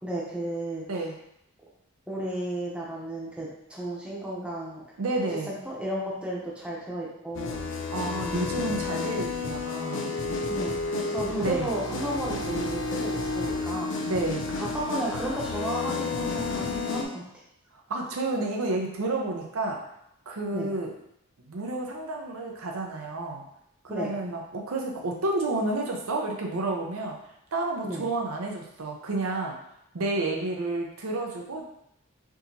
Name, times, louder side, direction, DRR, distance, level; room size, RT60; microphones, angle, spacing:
voice 1, 0.0-0.8 2.1-4.8 5.5-7.6 10.5-13.9 14.6-17.2 20.5-20.7 23.9-24.1 27.9-28.0, right 1 dB, 5° right, -5 dB, 0.7 m, -33 dB
voice 2, 5.0-5.5 7.9-10.1 11.4-11.7 14.0-14.4 17.9-19.8 20.3-20.9 21.5-23.4 23.8-27.2 27.5-29.6 29.9-31.6, right 2 dB, 85° right, 1 dB, 0.7 m, -30 dB
sound 1, 7.3-17.0, left 3 dB, 60° left, 0.5 m, -31 dB
4.7 x 2.8 x 2.7 m, 0.76 s
head